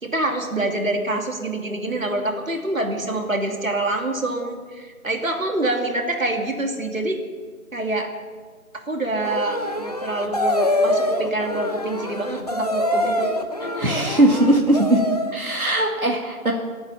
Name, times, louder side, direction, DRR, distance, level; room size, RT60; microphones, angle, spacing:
voice 1, 0.0-7.2 7.7-8.1 8.9-13.3, right 2 dB, 70° right, 3 dB, 2.6 m, -26 dB
sound 1, 9.2-15.4, left 1 dB, 30° left, 0.9 m, -25 dB
voice 2, 13.8-15.0 15.3-16.5, right 1 dB, 85° right, 0 dB, 2.3 m, -19 dB
23.0 x 8.9 x 6.9 m, 1.5 s
figure-of-eight pair, 160°, 42 cm